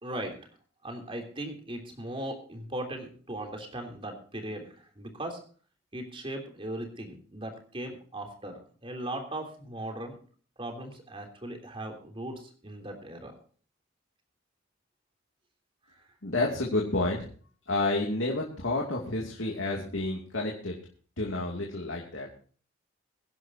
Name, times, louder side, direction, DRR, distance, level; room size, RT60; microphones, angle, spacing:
voice 1, 0.0-0.5 0.8-5.4 5.9-10.2 10.6-13.3 15.9-16.0, right 1 dB, 25° right, 3 dB, 3.2 m, -38 dB
voice 2, 16.2-17.3 17.7-20.8 21.2-22.3, left 2 dB, 70° left, -1 dB, 2.5 m, -30 dB
23.5 x 11.0 x 2.8 m, 0.42 s
head